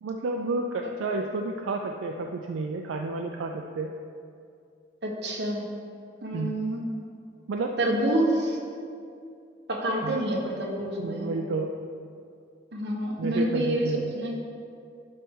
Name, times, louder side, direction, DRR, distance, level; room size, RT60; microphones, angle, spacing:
voice 1, 0.0-3.9 6.3-6.6 7.5-7.7 10.0-10.2 11.0-11.7 13.2-14.1, right 3 dB, 80° right, 3 dB, 0.4 m, -31 dB
voice 2, 5.0-5.6 6.2-6.9 7.8-8.6 9.7-11.3 12.7-14.4, right 1 dB, 55° right, -1 dB, 1.2 m, -27 dB
11.0 x 4.3 x 3.7 m, 2.4 s
head